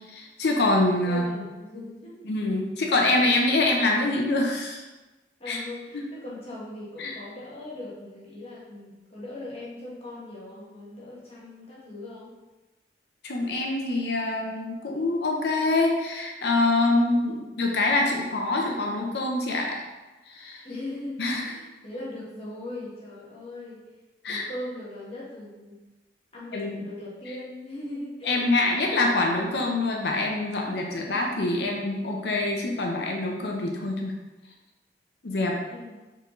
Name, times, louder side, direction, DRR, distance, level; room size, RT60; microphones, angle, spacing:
voice 1, 0.0-1.5 2.2-4.8 5.5-5.6 7.0-7.2 13.2-19.7 20.3-20.6 21.2-21.4 24.2-24.5 26.5-26.8 28.3-34.1 35.2-35.5, left 2 dB, 65° left, 0 dB, 0.6 m, -25 dB
voice 2, 1.0-2.3 5.4-12.3 20.6-23.8 24.3-25.8 26.3-28.4 35.7-36.0, left 1 dB, 35° left, -7 dB, 1.3 m, -39 dB
4.5 x 3.9 x 3.1 m, 1.1 s
head